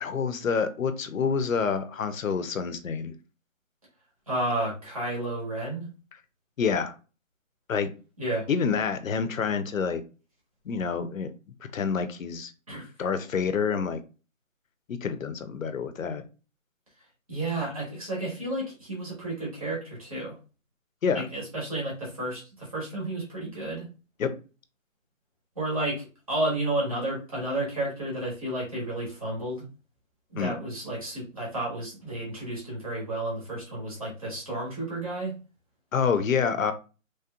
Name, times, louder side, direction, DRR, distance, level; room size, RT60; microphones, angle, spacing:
voice 1, 0.0-3.1 6.6-6.9 7.7-7.9 8.5-10.0 10.7-11.3 11.6-12.5 12.8-14.0 14.9-16.2 21.0-21.2 24.2-24.3 30.4-30.5 35.9-36.7, left 6 dB, 75° left, 10 dB, 0.6 m, -27 dB
voice 2, 4.3-5.9 8.2-8.5 12.7-12.9 17.3-20.4 21.1-23.9 25.5-29.6 30.3-35.4, right 1 dB, 25° right, -5 dB, 1.2 m, -31 dB
3.3 x 2.8 x 2.3 m, 0.33 s
hypercardioid pair, 170°, 40 cm